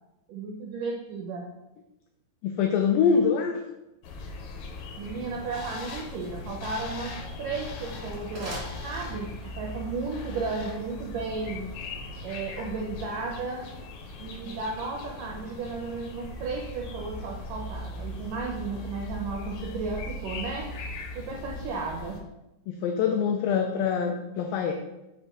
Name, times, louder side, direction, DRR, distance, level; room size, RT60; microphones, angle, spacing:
voice 1, 0.3-1.5 5.0-11.6 12.2-13.7 14.2-20.7 21.2-22.2, right 4 dB, 80° right, 0 dB, 1.9 m, -34 dB
voice 2, 2.4-3.6 22.7-24.7, left 6 dB, 90° left, 3 dB, 1.9 m, -24 dB
sound 1, 4.0-22.2, left 2 dB, 75° left, 2.3 m, -39 dB
sound 2, 8.1-9.5, right 1 dB, 50° right, 0.7 m, -43 dB
7.7 x 2.6 x 5.8 m, 0.96 s
omnidirectional pair, 4.6 m